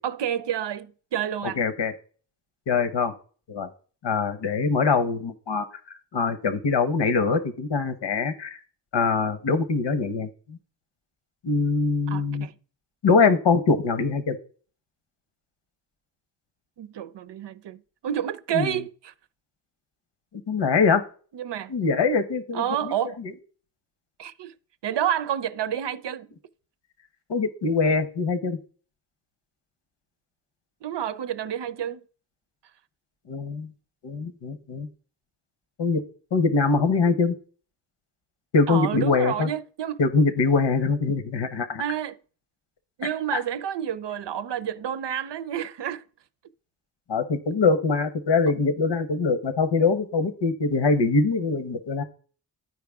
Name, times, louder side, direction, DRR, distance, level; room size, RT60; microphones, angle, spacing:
voice 1, 0.0-1.6 12.1-12.5 16.8-19.1 21.3-21.7 22.5-23.2 24.2-24.5 24.8-26.3 30.8-32.0 38.7-40.0 41.8-42.2 43.0-46.0, right 10 dB, 75° right, 0.6 m, -29 dB
voice 2, 1.6-1.9 2.7-3.1 3.5-3.7 4.0-5.7 6.1-8.6 8.9-10.6 11.4-12.5 13.0-14.4 18.5-18.7 20.5-21.0 21.7-22.9 27.3-28.6 33.3-33.7 34.0-34.9 35.8-36.0 36.3-37.3 38.5-39.5 40.0-41.8 47.1-52.0, left 4 dB, 85° left, 1.1 m, -23 dB
13.0 x 4.8 x 3.5 m
cardioid pair, 60°, 42 cm